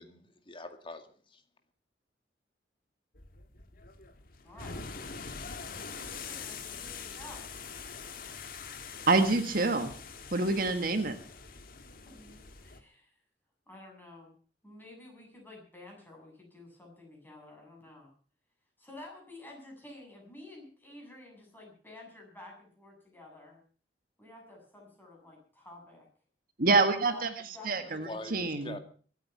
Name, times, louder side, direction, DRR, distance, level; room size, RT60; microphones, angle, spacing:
voice 1, 0.0-1.4 28.1-28.8, left 2 dB, 30° left, 7 dB, 2.0 m, -44 dB
sound 1, 3.1-12.8, left 5 dB, 55° left, 1.7 m, -44 dB
voice 2, 4.4-4.9 6.0-7.5 10.7-10.8 12.0-13.1 13.7-14.3 14.6-18.1 18.8-23.6 24.2-26.1 27.0-28.1, left 2 dB, 10° left, 0 dB, 7.0 m, -51 dB
voice 3, 9.1-9.9 10.3-11.2 26.6-27.3 27.6-28.8, right 3 dB, 55° right, 8 dB, 1.6 m, -26 dB
23.5 x 9.2 x 5.7 m, 0.43 s
head